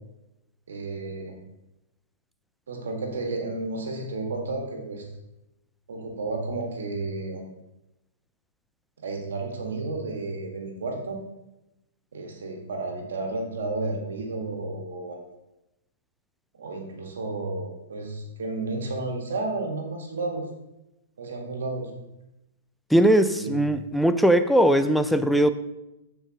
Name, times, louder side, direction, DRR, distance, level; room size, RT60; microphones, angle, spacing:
voice 1, 0.7-1.3 2.7-5.1 5.9-7.4 9.0-11.2 12.1-15.2 16.5-20.5 21.2-21.9 23.3-23.5, right 3 dB, 70° right, 2 dB, 1.7 m, -32 dB
voice 2, 22.9-25.5, right 1 dB, ahead, 10 dB, 0.5 m, -20 dB
13.5 x 4.7 x 3.0 m, 0.92 s
hypercardioid pair, 115°, 0 cm